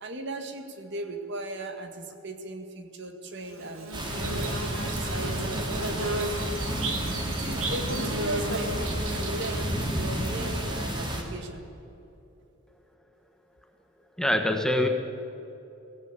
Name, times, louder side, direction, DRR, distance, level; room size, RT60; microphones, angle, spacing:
voice 1, 0.0-4.6 4.9-6.4 7.2-11.7, right 2 dB, 55° right, 6 dB, 2.0 m, -37 dB
Bird / Buzz, 3.4-11.1, right 2 dB, 80° right, 2.7 m, -35 dB
sound 1, 3.9-11.2, equal, 20° right, 3.1 m, -31 dB
voice 2, 14.2-14.9, left 1 dB, 5° left, 4 dB, 1.4 m, -24 dB
23.5 x 16.5 x 8.4 m, 2.9 s
head